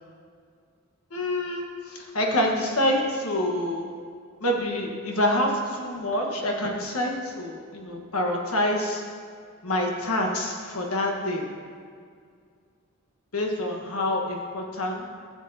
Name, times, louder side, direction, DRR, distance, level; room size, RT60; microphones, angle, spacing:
voice 1, 1.1-3.9 4.4-9.0 9.6-11.5 13.3-15.1, left 1 dB, 85° left, 0 dB, 1.5 m, -27 dB
14.0 x 7.5 x 2.9 m, 2.1 s
head